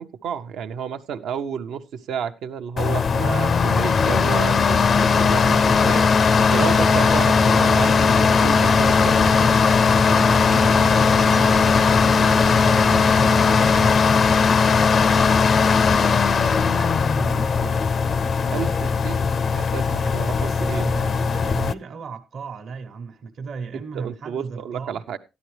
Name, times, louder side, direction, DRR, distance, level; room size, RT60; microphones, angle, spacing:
voice 1, 0.0-4.8 5.1-6.0 6.4-9.5 18.5-20.9 23.7-25.2, right 8 dB, 80° right, 0.8 m, -31 dB
sound 1, 2.8-21.7, left 5 dB, 50° left, 0.5 m, -18 dB
sound 2, 6.5-13.9, right 3 dB, 35° right, 0.6 m, -31 dB
voice 2, 10.1-13.9 15.3-16.1 16.7-17.8 19.9-25.0, right 5 dB, 65° right, 1.1 m, -36 dB
13.0 x 10.5 x 3.3 m
cardioid pair, 90°, 0 cm